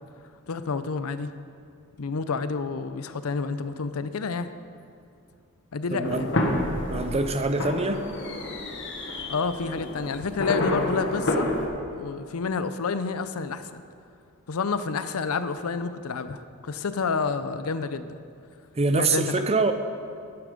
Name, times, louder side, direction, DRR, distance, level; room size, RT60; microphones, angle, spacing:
voice 1, 0.5-1.3 2.0-4.5 5.7-6.3 9.3-11.5 11.9-13.8 14.5-18.2 18.9-19.3, left 4 dB, 90° left, 12 dB, 0.6 m, -29 dB
voice 2, 5.9-6.3 6.9-8.0 18.7-19.7, right 3 dB, 30° right, 9 dB, 0.6 m, -24 dB
sound 1, 6.0-11.7, left 1 dB, 60° left, 1.4 m, -29 dB
12.0 x 9.9 x 5.1 m, 2.4 s
head